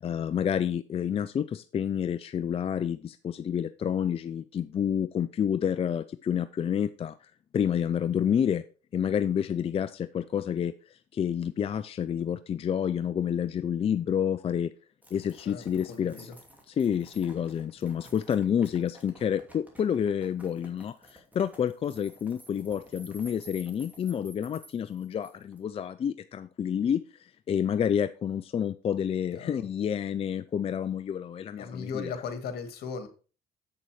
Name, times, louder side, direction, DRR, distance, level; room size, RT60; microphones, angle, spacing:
voice 1, 0.0-7.2 7.5-8.6 8.9-14.7 15.1-16.3 16.7-32.1, left 8 dB, 35° left, 0.4 m, -29 dB
sound 1, 15.0-25.6, right 1 dB, 10° right, 2.6 m, -53 dB
voice 2, 15.4-16.3 29.3-29.6 31.6-33.1, left 5 dB, 65° left, 1.9 m, -37 dB
7.7 x 6.9 x 4.9 m
cardioid pair, 110°, 17 cm